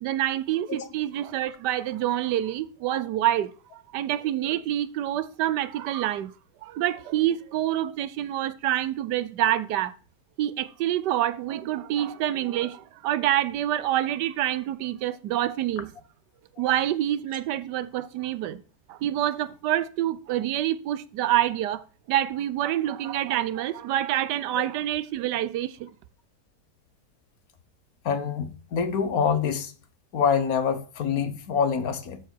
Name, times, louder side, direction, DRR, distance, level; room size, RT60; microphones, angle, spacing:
voice 1, 0.0-6.3 6.6-9.9 10.4-15.9 16.6-18.6 18.9-21.8 22.1-25.9, right 12 dB, 90° right, 1.3 m, -27 dB
voice 2, 28.0-29.7 30.1-32.2, left 6 dB, 65° left, 1.3 m, -26 dB
12.5 x 4.7 x 4.5 m
omnidirectional pair, 1.8 m